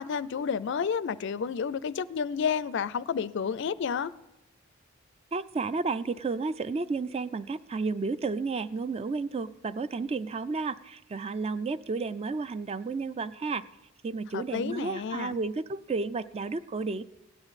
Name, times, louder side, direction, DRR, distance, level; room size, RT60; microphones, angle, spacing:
voice 1, 0.0-4.1 14.3-15.4, left 6 dB, 60° left, 0.4 m, -30 dB
voice 2, 5.3-13.6 14.0-17.0, right 4 dB, 30° right, 0.3 m, -32 dB
16.5 x 10.5 x 4.1 m
head